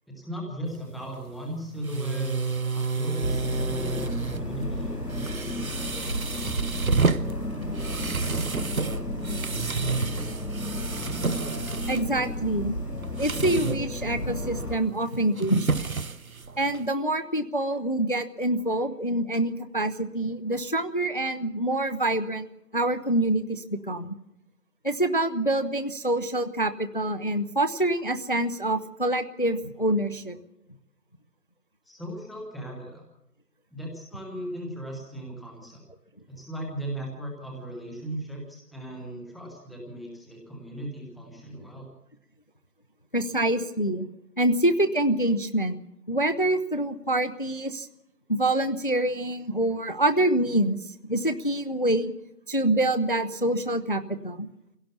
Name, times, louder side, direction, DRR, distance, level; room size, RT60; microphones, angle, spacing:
voice 1, 0.1-2.4 2.7-5.5 31.9-33.0 33.7-35.8 36.3-41.9, right 1 dB, ahead, -1 dB, 0.9 m, -37 dB
sound 1, 0.7-16.9, right 4 dB, 60° right, 0.9 m, -31 dB
sound 2, 3.2-14.7, left 1 dB, 80° left, 6.5 m, -33 dB
voice 2, 11.9-12.7 13.2-15.9 16.6-22.5 22.7-24.1 24.8-30.4 43.1-44.1 44.4-45.8 46.1-47.9 48.3-50.8 51.1-52.1 52.5-54.5, right 1 dB, 35° left, 11 dB, 0.7 m, -26 dB
23.0 x 17.0 x 7.0 m, 0.88 s
figure-of-eight pair, 160°, 47 cm